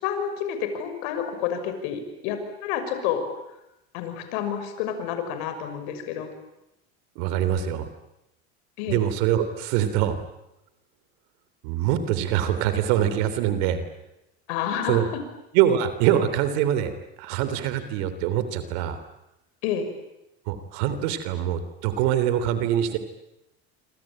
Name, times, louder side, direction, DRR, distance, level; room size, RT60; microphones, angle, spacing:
voice 1, 0.0-3.2 3.5-3.6 3.9-6.3 8.8-9.0 14.5-15.0 19.6-19.9, left 8 dB, 75° left, 8 dB, 6.2 m, -29 dB
voice 2, 7.1-7.9 8.9-10.2 11.6-13.8 14.9-15.0 15.5-16.9 17.2-19.0 20.5-23.0, right 10 dB, 70° right, 11 dB, 3.3 m, -24 dB
26.0 x 26.0 x 8.9 m, 0.90 s
supercardioid pair, 115°, 32 cm